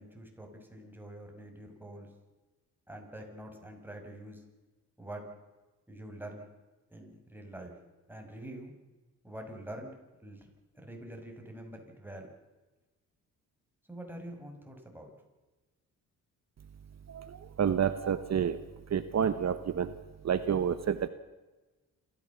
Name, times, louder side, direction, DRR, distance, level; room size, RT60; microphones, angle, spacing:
voice 1, 0.0-2.1 2.9-4.4 5.0-5.2 5.9-6.5 6.9-7.7 8.1-8.7 9.2-9.9 10.2-12.3 13.9-15.1, right 1 dB, 5° right, 2 dB, 5.8 m, -45 dB
voice 2, 17.1-18.6 18.9-20.0 20.2-21.1, right 8 dB, 50° right, 12 dB, 1.1 m, -29 dB
27.0 x 14.5 x 7.2 m, 1.2 s
cardioid pair, 85°, 34 cm